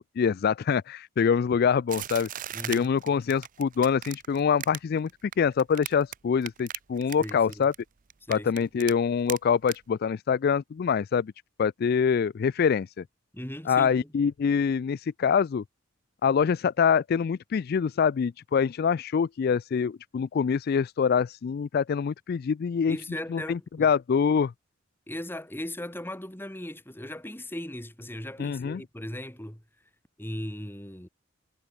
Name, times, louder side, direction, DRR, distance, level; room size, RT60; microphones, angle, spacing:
voice 1, 0.0-2.3 2.6-5.1 5.4-7.7 8.3-11.3 11.6-13.0 13.7-15.6 16.2-23.0 23.3-24.5 28.4-28.8, left 6 dB, 50° left, 0.3 m, -25 dB
sound 1, 1.9-6.2 6.4-7.8 8.1-8.9 9.3-9.4 9.7-9.8, right 11 dB, 45° right, 0.6 m, -37 dB
voice 2, 2.5-2.9 7.2-7.6 8.3-8.7 13.3-14.1 22.9-23.9 25.1-29.6 30.2-31.1, left 1 dB, 10° left, 3.4 m, -38 dB
head